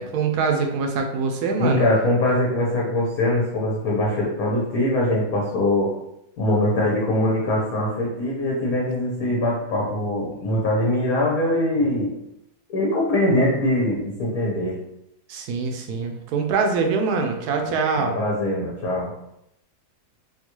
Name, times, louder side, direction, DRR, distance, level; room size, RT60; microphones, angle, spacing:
voice 1, 0.0-1.9 15.3-18.2, right 5 dB, 80° right, 3 dB, 1.1 m, -24 dB
voice 2, 1.6-5.9 6.4-12.1 12.7-14.8 17.6-19.1, left 1 dB, 70° left, -3 dB, 1.2 m, -22 dB
3.7 x 2.3 x 2.9 m, 0.82 s
omnidirectional pair, 1.7 m